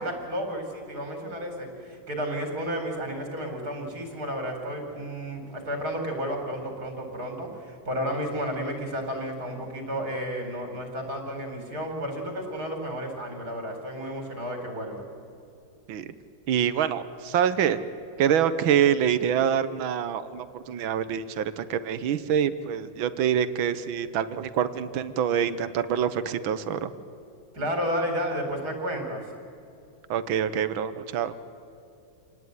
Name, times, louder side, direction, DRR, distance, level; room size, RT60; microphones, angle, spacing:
voice 1, 0.0-15.0 27.5-29.2, equal, 50° right, 3 dB, 4.7 m, -32 dB
voice 2, 16.5-17.8 18.2-26.9 30.1-31.3, right 9 dB, 85° right, 13 dB, 1.8 m, -26 dB
27.5 x 19.0 x 9.6 m, 2.7 s
omnidirectional pair, 2.1 m